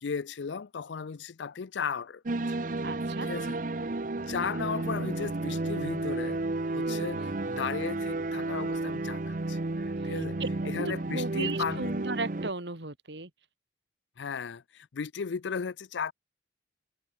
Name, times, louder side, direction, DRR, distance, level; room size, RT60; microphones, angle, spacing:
voice 1, 0.0-2.4 3.2-3.6 4.3-6.4 6.7-9.6 10.0-10.4 10.7-12.0 14.2-16.1, left 6 dB, 80° left, 0.5 m, -35 dB
sound 1, 2.3-12.5, right 2 dB, 45° right, 0.8 m, -32 dB
voice 2, 2.8-3.3 6.9-7.3 10.0-10.5 10.8-13.3, right 3 dB, 75° right, 2.8 m, -36 dB
head